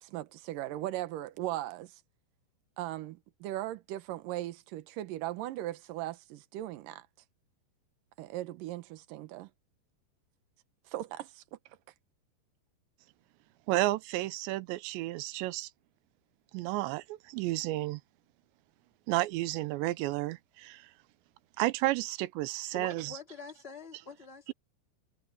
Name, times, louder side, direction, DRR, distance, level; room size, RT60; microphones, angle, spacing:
voice 1, 0.0-2.0 2.8-7.1 8.2-9.5 10.9-11.6, right 14 dB, 70° right, 2.2 m, -38 dB
voice 2, 13.7-15.7 16.5-18.0 19.1-20.9 21.6-23.1, right 18 dB, 85° right, 3.0 m, -32 dB
voice 3, 22.7-24.5, left 3 dB, 20° left, 2.1 m, -46 dB
omnidirectional pair, 5.1 m